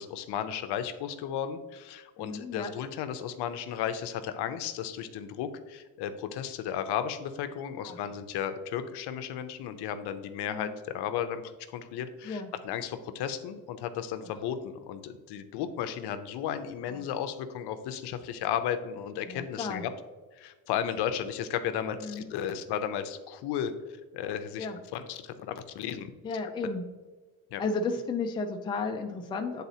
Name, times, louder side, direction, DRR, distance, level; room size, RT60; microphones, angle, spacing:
voice 1, 0.0-11.4 11.7-19.9 20.4-23.7 24.1-24.7 24.9-26.1 27.5-27.6, left 9 dB, 65° left, 9 dB, 0.7 m, -34 dB
voice 2, 2.2-2.7 7.8-8.0 10.5-10.7 12.2-12.5 16.9-17.0 19.2-19.8 22.0-22.3 24.6-24.8 26.2-26.8 27.6-29.6, left 4 dB, 10° left, 3 dB, 0.3 m, -33 dB
9.4 x 4.0 x 2.8 m, 1.3 s
cardioid pair, 145°, 42 cm